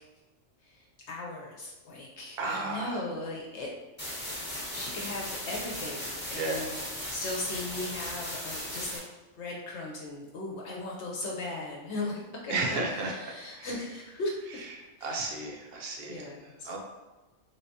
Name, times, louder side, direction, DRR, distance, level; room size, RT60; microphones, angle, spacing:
voice 1, 0.6-3.7 4.7-9.0 9.4-12.6 13.0-14.6 15.0-15.4 16.1-16.8, left 2 dB, 70° left, -2 dB, 0.8 m, -38 dB
voice 2, 2.4-3.0 6.4-6.7 12.5-13.1 13.5-13.7 15.0-16.2 16.7-16.8, right 3 dB, 60° right, 0 dB, 0.8 m, -32 dB
sound 1, 4.0-9.0, equal, 10° left, 0.7 m, -37 dB
3.3 x 3.1 x 2.7 m, 1.1 s
omnidirectional pair, 1.3 m